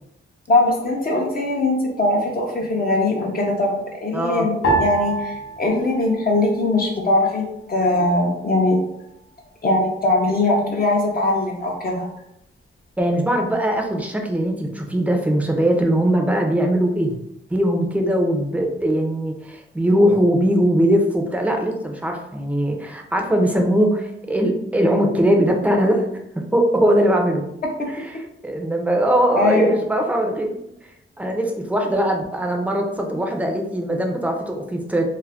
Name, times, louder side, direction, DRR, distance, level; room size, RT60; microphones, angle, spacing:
voice 1, 0.5-3.7 4.0-8.8 9.6-12.1 27.8-27.9 29.4-29.7, left 2 dB, 45° left, -1 dB, 0.5 m, -20 dB
voice 2, 4.1-4.5 13.0-17.2 17.5-26.0 26.5-27.4 27.9-30.6 31.2-35.0, equal, 5° right, 2 dB, 0.4 m, -20 dB
sound 1, 4.6-7.2 7.4-8.3 8.9-9.4, right 2 dB, 85° left, 0.7 m, -27 dB
2.3 x 2.1 x 3.4 m, 0.82 s
wide cardioid pair, 110°, 21 cm